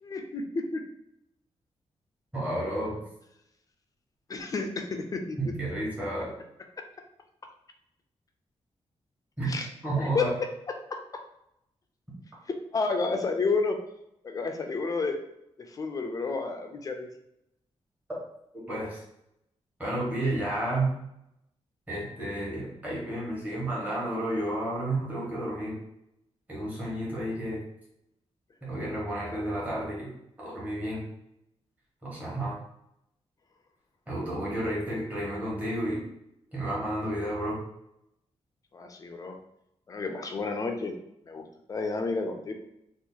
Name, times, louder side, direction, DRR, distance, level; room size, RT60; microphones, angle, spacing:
voice 1, 0.0-0.8 4.3-5.4 6.8-6.9 9.5-9.7 10.0-11.2 12.7-13.8 14.2-15.2 15.6-17.1 38.7-39.4 39.9-40.9 41.3-41.4 41.7-42.5, left 3 dB, 30° left, 4 dB, 0.4 m, -31 dB
voice 2, 2.3-3.0 5.4-6.3 9.4-9.5 9.8-10.3 18.7-19.0 19.8-20.9 21.9-25.8 26.5-27.6 28.6-30.1 30.4-31.0 32.0-32.6 34.1-36.0 36.5-37.6, right 1 dB, 15° right, -7 dB, 1.2 m, -31 dB
2.8 x 2.4 x 3.8 m, 0.80 s
wide cardioid pair, 170°, 11 cm